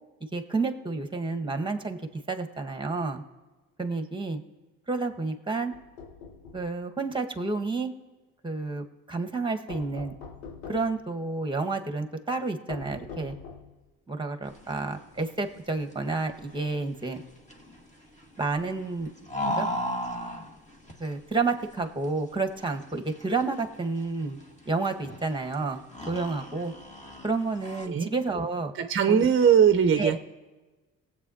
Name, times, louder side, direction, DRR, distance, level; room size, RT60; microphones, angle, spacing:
voice 1, 0.3-2.0 2.3-3.2 3.8-4.4 4.9-5.7 6.5-7.9 8.4-10.1 10.7-13.3 14.1-17.2 18.4-19.1 19.6-19.7 21.0-24.4 24.6-26.7 27.2-28.7 29.1-29.3 30.0-30.2, right 3 dB, 10° right, 5 dB, 1.6 m, -30 dB
sound 1, 5.7-6.7 9.7-11.0 12.7-13.8, left 5 dB, 85° left, 1.1 m, -43 dB
sound 2, 14.4-27.9, equal, 20° left, 1.9 m, -38 dB
voice 2, 28.7-30.2, right 7 dB, 30° right, 8 dB, 0.7 m, -20 dB
22.0 x 8.3 x 2.8 m, 1.2 s
hypercardioid pair, 45°, 38 cm